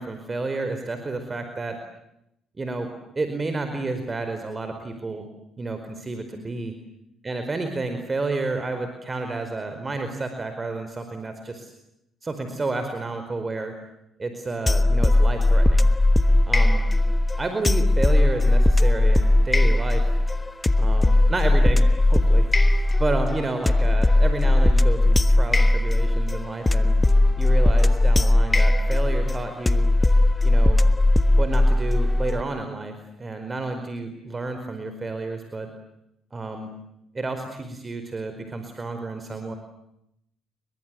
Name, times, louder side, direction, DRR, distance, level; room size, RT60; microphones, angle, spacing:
voice 1, 0.0-1.8 2.6-2.9 3.1-5.3 5.6-6.7 7.2-11.7 12.2-13.7 14.2-15.9 16.5-16.8 17.4-20.1 20.8-26.9 27.4-29.9 30.4-30.8 31.4-32.9 33.2-35.7 36.3-36.7 37.1-39.6, right 3 dB, 30° right, 7 dB, 4.8 m, -30 dB
sound 1, 14.7-32.4, left 1 dB, 15° left, 1.4 m, -18 dB
29.5 x 23.5 x 7.8 m, 0.80 s
cardioid pair, 80°, 0 cm